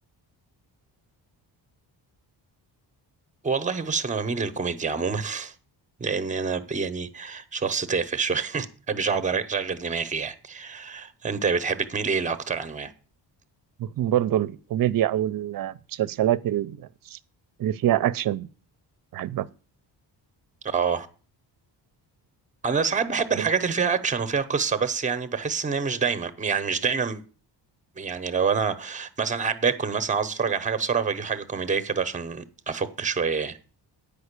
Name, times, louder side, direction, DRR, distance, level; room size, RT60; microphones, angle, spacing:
voice 1, 3.4-5.5 6.0-12.9 20.6-21.1 22.6-27.2 28.0-33.6, right 5 dB, 15° right, 0.8 m, -27 dB
voice 2, 13.8-17.2 17.6-18.5 19.1-19.5 23.3-23.5, right 12 dB, 50° right, 0.6 m, -25 dB
9.5 x 5.3 x 8.1 m
wide cardioid pair, 150°, 43 cm